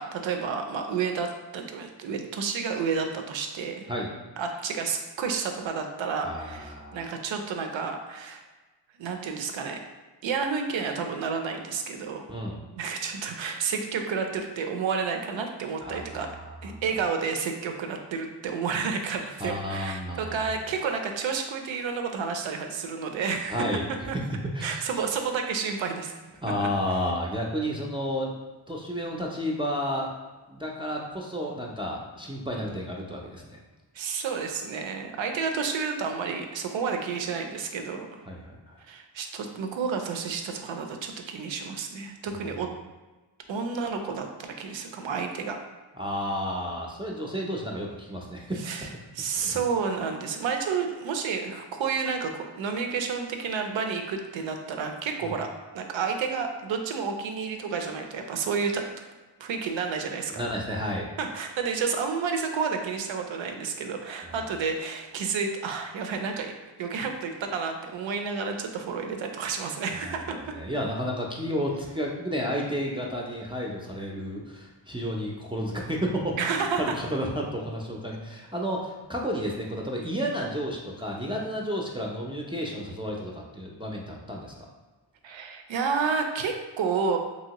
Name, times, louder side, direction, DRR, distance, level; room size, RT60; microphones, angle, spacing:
voice 1, 0.0-3.9 4.4-8.4 9.0-9.8 10.2-12.2 12.7-16.3 16.6-24.2 24.6-26.1 26.6-26.7 32.6-32.7 33.9-38.2 38.8-42.7 43.5-45.6 48.6-48.9 49.1-55.5 55.7-58.8 59.4-60.4 61.2-66.5 66.8-70.4 76.4-76.9 85.2-87.2, right 5 dB, 80° right, 5 dB, 0.5 m, -30 dB
voice 2, 6.2-7.0 12.3-12.6 15.8-16.4 16.8-16.9 19.4-20.5 23.5-23.8 24.1-24.2 24.5-24.8 26.4-28.3 28.7-30.1 30.5-33.6 38.3-38.8 45.9-48.7 49.3-49.6 55.2-55.3 60.3-61.1 64.2-64.5 70.0-76.5 76.8-84.7, equal, 10° right, -2 dB, 0.4 m, -32 dB
2.9 x 2.7 x 2.9 m, 1.2 s
cardioid pair, 60°, 45 cm